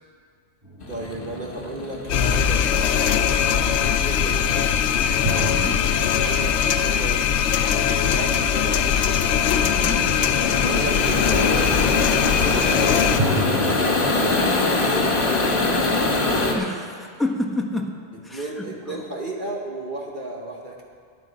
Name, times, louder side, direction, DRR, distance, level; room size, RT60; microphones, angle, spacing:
sound 1, 0.6-2.3 5.2-7.9 13.2-16.2, equal, 20° right, 3.9 m, -32 dB
sound 2, 0.8-16.5, left 2 dB, 55° left, 1.6 m, -24 dB
voice 1, 0.9-2.7 3.4-4.7 6.0-7.3 7.7-9.2 10.3-11.7 12.4-13.3 13.7-15.3 18.3-20.8, right 2 dB, 50° right, 0 dB, 1.2 m, -34 dB
sound 3, 2.1-13.2, left 8 dB, 80° left, 0.9 m, -21 dB
voice 2, 5.4-5.8 9.6-10.1 16.5-18.0 18.2-19.0, left 1 dB, ahead, -1 dB, 1.1 m, -29 dB
12.5 x 10.0 x 5.1 m, 2.1 s
omnidirectional pair, 1.1 m